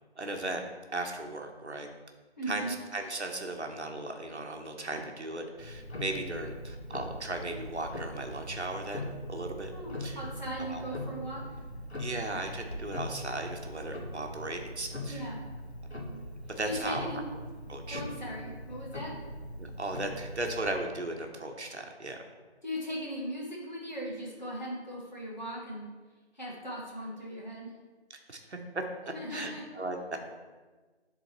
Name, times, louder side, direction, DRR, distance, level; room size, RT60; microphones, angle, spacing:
voice 1, 0.2-0.6 0.9-1.9 2.5-9.7 10.0-10.2 10.6-10.8 12.0-15.3 16.5-17.1 17.7-18.0 19.6-22.2 28.1-30.2, right 2 dB, 75° right, 3 dB, 1.1 m, -37 dB
voice 2, 2.4-2.8 9.7-11.5 15.1-15.4 16.6-17.2 17.9-19.1 22.6-25.9 26.3-27.7 29.1-29.6, equal, 40° left, -5 dB, 1.7 m, -38 dB
Tick-tock, 5.6-20.8, left 1 dB, 70° left, 1.3 m, -41 dB
10.5 x 3.8 x 3.0 m, 1.3 s
figure-of-eight pair, 180°, 34 cm